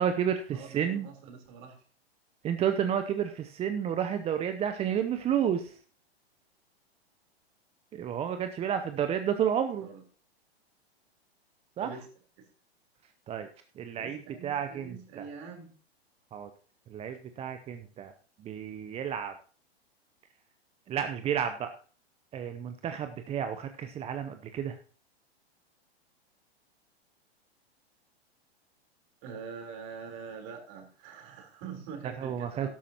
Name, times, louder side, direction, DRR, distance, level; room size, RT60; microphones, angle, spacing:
voice 1, 0.0-1.1 2.4-5.7 7.9-9.9 11.8-11.9 13.3-13.5 13.8-15.3 16.3-16.5 16.9-18.1 18.4-19.3 20.9-21.7 22.3-24.8 32.2-32.7, right 8 dB, 20° right, 8 dB, 0.6 m, -31 dB
voice 2, 0.5-1.8 9.8-10.0 11.8-12.1 12.4-12.5 13.9-15.7 29.2-32.7, right 6 dB, 45° right, 4 dB, 3.8 m, -44 dB
12.5 x 12.0 x 2.9 m, 0.40 s
hypercardioid pair, 110°, 32 cm